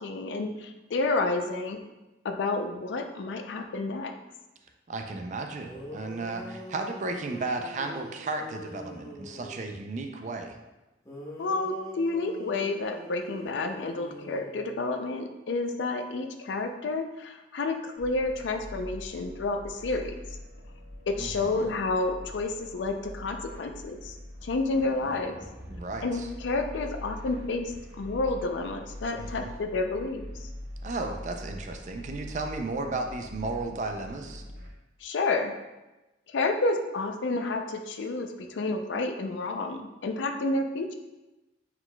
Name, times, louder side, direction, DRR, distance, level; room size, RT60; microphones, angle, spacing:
voice 1, 0.0-1.8 2.2-4.1 11.4-20.2 21.1-24.2 24.4-25.4 26.0-30.5 35.0-35.5 36.3-41.0, left 3 dB, 85° left, 6 dB, 0.4 m, -30 dB
voice 2, 4.9-10.6 21.2-21.7 25.7-26.3 29.1-29.5 30.8-34.4, right 3 dB, 40° right, 5 dB, 0.4 m, -34 dB
sound 1, 5.6-9.8 11.0-15.1, equal, 15° left, 0.9 m, -44 dB
sound 2, 18.0-34.7, left 1 dB, 55° right, 1.0 m, -43 dB
4.6 x 3.9 x 2.2 m, 1.0 s
head